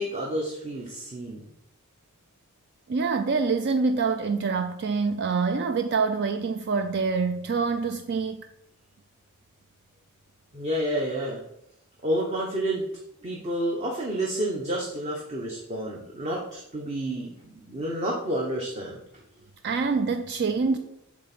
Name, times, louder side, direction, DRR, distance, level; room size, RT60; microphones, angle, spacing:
voice 1, 0.0-1.5 10.5-11.4 12.0-12.8 13.2-19.0, right 1 dB, 30° right, 1.0 m, -30 dB
voice 2, 2.9-8.5 19.6-20.8, right 4 dB, 50° right, 0.4 m, -26 dB
7.4 x 3.7 x 6.0 m
head